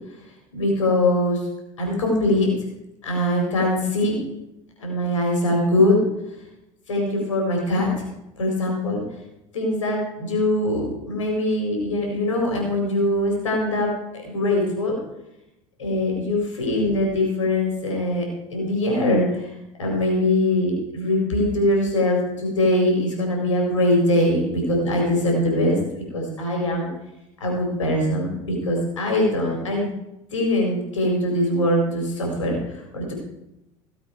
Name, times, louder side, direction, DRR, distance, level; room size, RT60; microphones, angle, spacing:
voice 1, 0.5-1.5 1.8-2.5 3.0-4.2 4.8-6.0 6.9-8.0 8.4-9.0 9.5-15.0 15.8-19.5 19.8-25.8 26.1-26.9 27.4-29.9 30.3-33.1, left 1 dB, 80° left, 0 dB, 4.4 m, -22 dB
17.5 x 8.0 x 4.6 m, 0.89 s
figure-of-eight pair, 75°, 16 cm